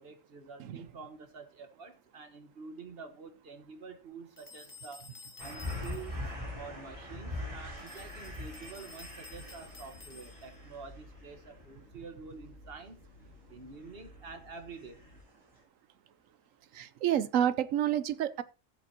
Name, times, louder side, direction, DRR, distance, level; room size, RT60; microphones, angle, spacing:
voice 1, 0.0-5.1 5.4-13.0 13.5-15.0, right 5 dB, 50° right, 1.5 m, -48 dB
sound 1, 4.4-6.3 7.8-10.7, left 4 dB, 25° left, 1.4 m, -52 dB
sound 2, 5.4-11.7 13.8-14.3 14.8-15.3 15.6-15.7, left 1 dB, 25° right, 3.6 m, -42 dB
sound 3, 7.9-15.2, left 2 dB, 70° left, 2.6 m, -55 dB
voice 2, 16.7-18.4, right 10 dB, 80° right, 1.1 m, -29 dB
14.0 x 8.5 x 2.8 m
omnidirectional pair, 1.4 m